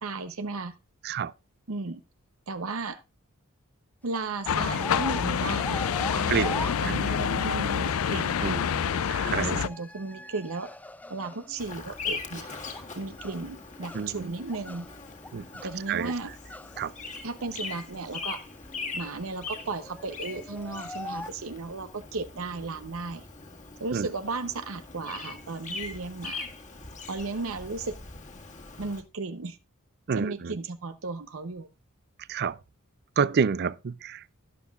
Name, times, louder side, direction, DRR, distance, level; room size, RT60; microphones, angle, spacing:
voice 1, 0.0-0.8 1.7-2.0 2.5-3.0 4.0-8.3 9.3-10.7 11.1-12.5 13.0-14.9 15.6-16.3 17.2-18.5 18.9-23.3 23.8-26.5 27.1-28.0 28.8-29.6 30.1-31.7, right 3 dB, 80° right, 0.8 m, -35 dB
sound 1, 4.1-7.6 9.2-11.6 12.3-14.2 14.5-16.9 17.2-17.8 18.1-18.2 18.5-19.1 19.5-21.3, left 2 dB, 10° left, 0.5 m, -42 dB
sound 2, 4.5-9.7, left 7 dB, 80° left, 0.4 m, -27 dB
voice 2, 6.3-7.2 8.4-9.6 13.9-14.3 15.3-15.4 15.9-16.1 16.8-16.9 23.9-24.1 30.1-30.6 32.3-32.6 33.2-34.4, right 6 dB, 50° right, 0.4 m, -29 dB
Bird vocalization bird call bird song, 11.6-29.0, left 4 dB, 35° left, 1.9 m, -41 dB
12.5 x 11.5 x 2.4 m
head